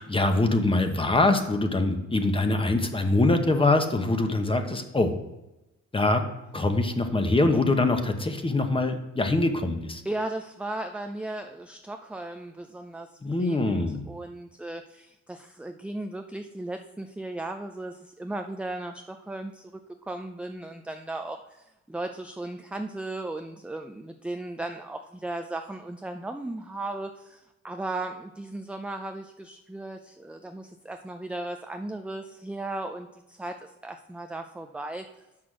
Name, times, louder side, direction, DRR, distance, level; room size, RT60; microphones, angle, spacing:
voice 1, 0.0-5.1 5.9-6.2 6.5-10.0 13.2-14.0, left 2 dB, 15° left, 6 dB, 1.0 m, -24 dB
voice 2, 10.0-13.1 13.4-19.7 20.0-35.1, right 2 dB, 5° right, 6 dB, 0.4 m, -36 dB
6.2 x 6.1 x 6.1 m, 0.99 s
cardioid pair, 90°, 30 cm